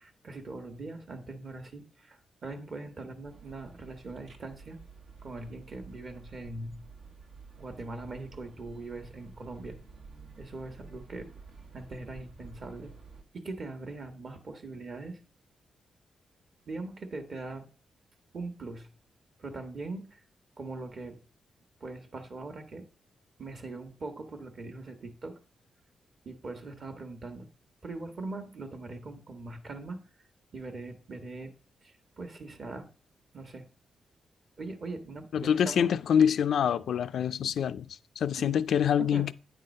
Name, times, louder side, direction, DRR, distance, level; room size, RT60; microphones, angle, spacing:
voice 1, 0.0-4.8 5.2-6.9 7.6-9.8 10.4-11.3 11.7-13.0 13.3-15.2 16.7-17.7 18.3-18.9 19.4-20.2 20.6-21.2 21.8-22.9 23.4-25.3 26.2-27.5 27.8-30.0 30.5-31.5 31.8-32.9 33.3-33.7 34.6-35.9 38.4-38.6 39.0-39.3, right 3 dB, 45° right, 1.2 m, -41 dB
sound 1, 3.2-13.2, right 4 dB, 85° right, 1.1 m, -51 dB
voice 2, 35.3-39.3, left 8 dB, 75° left, 0.3 m, -26 dB
8.9 x 3.8 x 5.2 m
cardioid pair, 115°, 0 cm